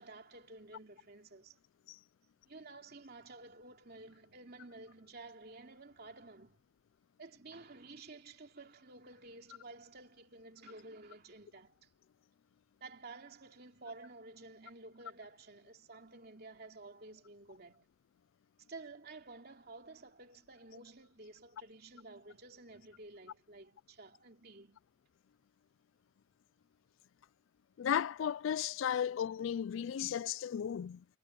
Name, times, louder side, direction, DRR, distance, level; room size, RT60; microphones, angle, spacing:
voice 1, 0.0-1.6 2.4-6.6 7.2-11.9 12.8-17.9 18.7-24.8 28.9-29.0, right 3 dB, 50° right, 2.9 m, -52 dB
voice 2, 27.8-31.0, left 8 dB, 65° left, 0.3 m, -34 dB
head